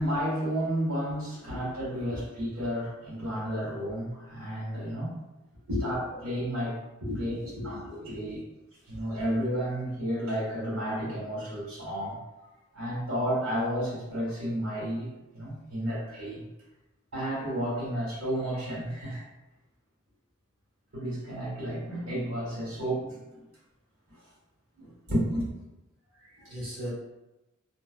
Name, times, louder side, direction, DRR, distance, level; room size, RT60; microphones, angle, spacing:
voice 1, 0.0-5.2 5.8-6.8 7.2-8.4 8.9-12.2 12.7-16.4 17.1-19.2 20.9-23.4 24.1-24.2 24.8-25.5, equal, 80° right, -7 dB, 1.5 m, -32 dB
voice 2, 7.0-8.2 26.2-26.9, left 1 dB, 60° right, -10 dB, 1.4 m, -35 dB
2.6 x 2.2 x 2.3 m, 0.99 s
head